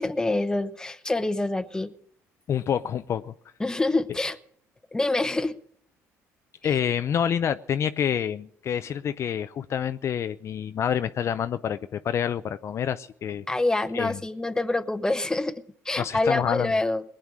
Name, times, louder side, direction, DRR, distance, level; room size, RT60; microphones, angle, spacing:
voice 1, 0.0-1.9 3.6-4.4 4.9-5.5 13.5-15.5 15.8-17.0, left 2 dB, 10° left, 10 dB, 0.9 m, -26 dB
voice 2, 2.5-3.3 6.6-13.5 13.9-14.2 16.0-16.7, left 8 dB, 50° left, 11 dB, 0.5 m, -27 dB
19.5 x 8.9 x 6.2 m, 0.65 s
supercardioid pair, 85°, 6 cm